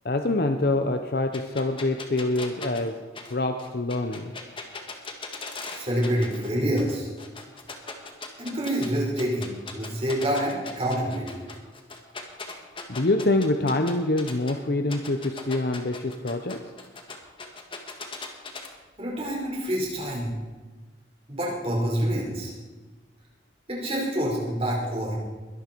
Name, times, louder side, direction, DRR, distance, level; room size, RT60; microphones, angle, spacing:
voice 1, 0.0-3.0 3.3-4.3 12.9-16.7, left 2 dB, 55° left, 7 dB, 0.8 m, -25 dB
sound 1, 1.3-6.5 6.8-8.9 9.2-14.5 14.9-18.7, left 4 dB, 30° left, 1.7 m, -39 dB
voice 2, 5.7-7.1 8.4-11.4 19.0-20.3 21.3-22.5 23.7-25.2, equal, 35° right, -3 dB, 5.2 m, -27 dB
21.5 x 12.0 x 4.6 m, 1.3 s
head